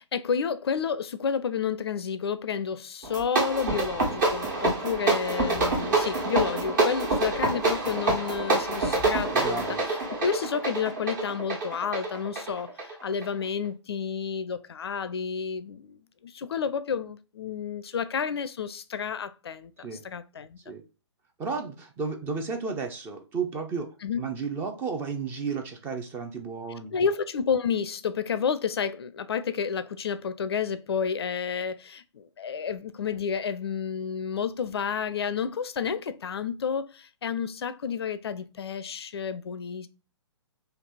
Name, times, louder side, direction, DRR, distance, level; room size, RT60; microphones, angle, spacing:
voice 1, 0.0-20.7 24.0-24.2 26.9-39.9, left 6 dB, 60° left, 0.4 m, -30 dB
sound 1, 3.0-13.3, right 2 dB, 45° right, 1.4 m, -26 dB
voice 2, 9.3-9.8 19.8-20.0 20.7-20.8 21.4-23.9 24.2-27.0, right 5 dB, 15° right, 0.4 m, -33 dB
3.3 x 2.8 x 3.9 m
figure-of-eight pair, 125°, 15 cm